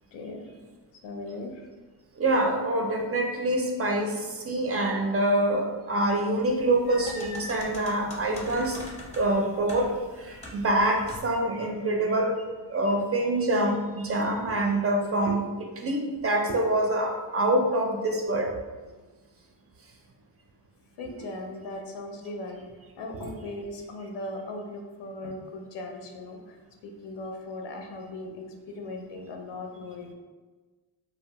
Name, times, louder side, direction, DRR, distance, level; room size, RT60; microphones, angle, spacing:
voice 1, 0.1-0.4 1.0-1.6 2.8-2.9 21.0-22.6 23.0-26.6 26.8-30.1, left 2 dB, 80° left, 3 dB, 0.6 m, -38 dB
voice 2, 2.2-8.8 9.1-12.4 12.7-18.5 23.1-23.3, right 1 dB, 35° right, 1 dB, 0.4 m, -26 dB
sound 1, 6.5-11.4, equal, 15° left, 0.6 m, -43 dB
2.9 x 2.1 x 2.9 m, 1.3 s
cardioid pair, 80°, 42 cm